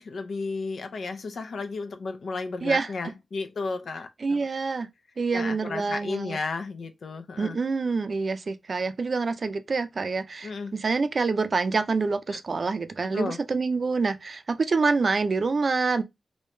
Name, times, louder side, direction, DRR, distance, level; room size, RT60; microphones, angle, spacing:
voice 1, 0.0-4.4 5.3-7.6 10.4-10.7 13.1-13.4, left 4 dB, 80° left, 0.6 m, -33 dB
voice 2, 4.2-4.9 5.2-6.4 7.4-16.0, right 4 dB, 50° right, 0.4 m, -26 dB
3.0 x 2.7 x 3.3 m
wide cardioid pair, 130°, 0 cm